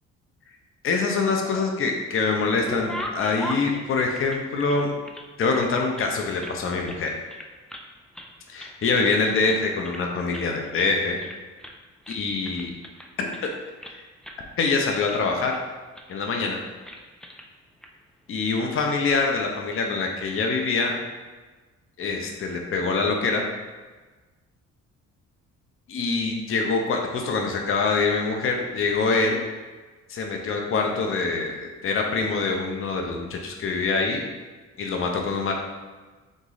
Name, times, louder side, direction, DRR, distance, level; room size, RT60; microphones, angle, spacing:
voice 1, 0.8-4.9 5.4-7.2 8.5-11.2 12.1-12.7 13.2-13.5 13.9-14.0 14.6-15.6 16.1-16.6 18.3-20.9 22.0-23.4 25.9-29.4 30.1-34.2 34.8-35.5, left 4 dB, 45° left, 1 dB, 0.7 m, -25 dB
sound 1, 1.1-2.0 2.3-5.3 5.5-6.6 6.9-7.0 7.3-7.9 8.1-8.8 9.1-10.1 10.3-10.5 10.8-10.9 11.2-11.8 12.1-14.0 14.2-14.4 14.7-15.6 16.0-16.2 16.4-16.6 16.9-17.5 17.8-17.9 18.9-19.2, equal, ahead, 0.4 m, -39 dB
3.8 x 3.1 x 3.9 m, 1.3 s
cardioid pair, 90°, 30 cm